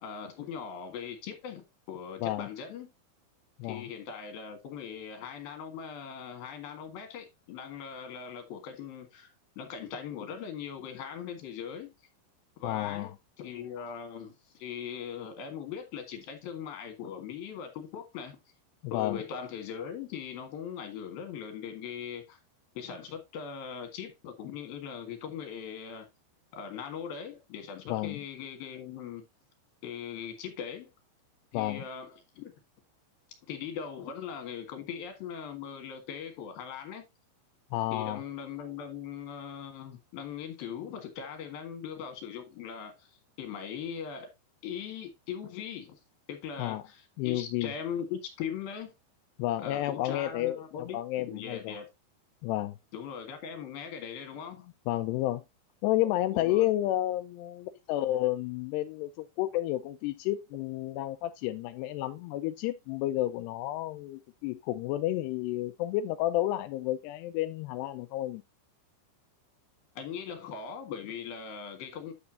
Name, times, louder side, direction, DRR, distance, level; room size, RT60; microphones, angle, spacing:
voice 1, 0.0-2.9 3.6-11.9 12.6-13.1 13.4-18.4 18.9-22.4 22.7-26.1 26.5-29.2 29.8-30.9 31.5-32.5 33.5-37.0 37.9-43.1 43.4-44.3 44.6-46.0 46.3-48.9 49.6-51.9 52.9-54.7 56.3-56.7 70.0-72.1, left 7 dB, 60° left, 3.3 m, -40 dB
voice 2, 12.6-13.1 18.9-19.2 27.9-28.2 31.5-31.8 37.7-38.2 46.6-46.8 47.2-47.7 49.4-50.6 50.9-51.8 52.4-52.8 54.9-55.4 55.8-68.4, left 14 dB, 85° left, 2.4 m, -31 dB
9.6 x 7.0 x 2.7 m
omnidirectional pair, 5.3 m